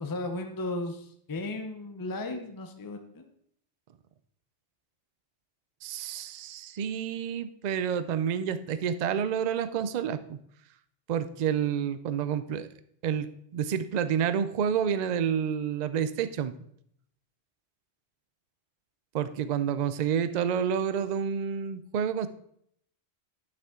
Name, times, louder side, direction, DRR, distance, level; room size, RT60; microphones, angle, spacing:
voice 1, 0.0-3.3, left 2 dB, 20° left, 5 dB, 0.7 m, -35 dB
voice 2, 5.8-10.4 11.1-12.7 13.0-13.3 13.5-16.5 19.1-22.3, right 8 dB, 55° right, 12 dB, 0.5 m, -29 dB
10.5 x 6.0 x 3.7 m, 0.69 s
omnidirectional pair, 1.2 m